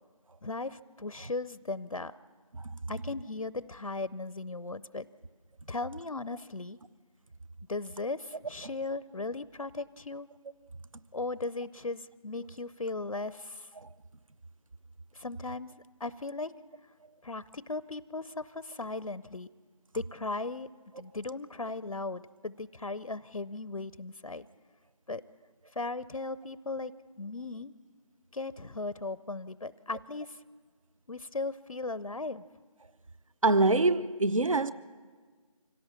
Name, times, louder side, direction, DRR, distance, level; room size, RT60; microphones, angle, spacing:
voice 1, 0.4-2.1 2.9-5.1 5.7-6.8 7.7-10.3 11.1-13.7 15.1-16.5 17.2-19.5 19.9-20.7 21.0-24.5 25.1-25.2 25.7-26.9 27.2-27.7 28.3-30.4 31.1-32.4, left 3 dB, 75° left, 0.6 m, -37 dB
voice 2, 33.4-34.7, right 2 dB, 65° right, 0.6 m, -25 dB
25.5 x 17.0 x 7.2 m
figure-of-eight pair, 170°, 18 cm